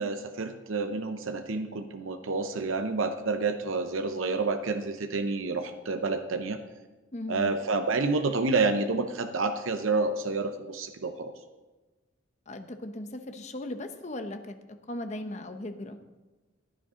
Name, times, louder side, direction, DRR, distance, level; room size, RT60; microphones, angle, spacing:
voice 1, 0.0-6.6 7.3-11.3, right 3 dB, 70° right, 7 dB, 0.8 m, -29 dB
voice 2, 7.1-7.5 12.5-14.6 14.9-16.0, left 1 dB, 35° left, 7 dB, 0.8 m, -37 dB
15.0 x 9.9 x 3.7 m, 1.2 s
head